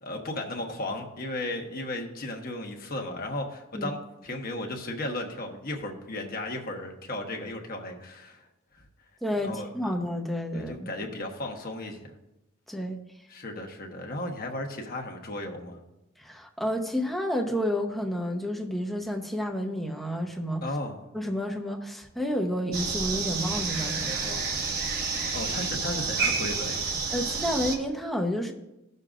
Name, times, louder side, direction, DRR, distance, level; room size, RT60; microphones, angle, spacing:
voice 1, 0.0-8.4 8.7-8.8 9.4-9.7 10.5-12.1 13.3-15.8 20.6-21.0 24.9-26.8, left 1 dB, 40° left, 2 dB, 1.2 m, -35 dB
voice 2, 9.2-10.9 12.7-13.0 16.2-20.6 21.1-24.4 27.1-28.5, equal, ahead, 1 dB, 0.8 m, -30 dB
sound 1, 22.7-27.8, right 4 dB, 45° right, 1.2 m, -29 dB
15.5 x 6.7 x 2.5 m, 0.93 s
head